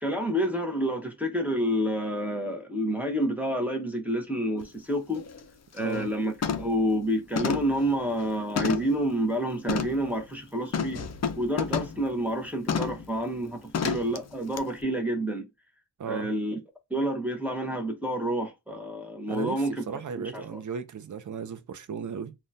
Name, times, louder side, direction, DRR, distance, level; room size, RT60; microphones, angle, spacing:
voice 1, 0.0-5.3 5.7-11.1 11.4-15.5 16.0-16.6 16.9-19.8 20.2-20.6, equal, 5° right, 0.7 m, -29 dB
sound 1, 4.6-4.7 5.1-5.4 5.8-6.1 6.4-6.8 7.4-9.0 9.7-10.0 10.7-12.0 12.7-13.1 13.7-14.2 14.6-14.7, left 6 dB, 40° left, 0.4 m, -30 dB
voice 2, 5.8-6.1 16.0-16.3 19.3-22.3, right 6 dB, 45° right, 0.5 m, -36 dB
3.6 x 2.2 x 2.6 m
wide cardioid pair, 105°, 43 cm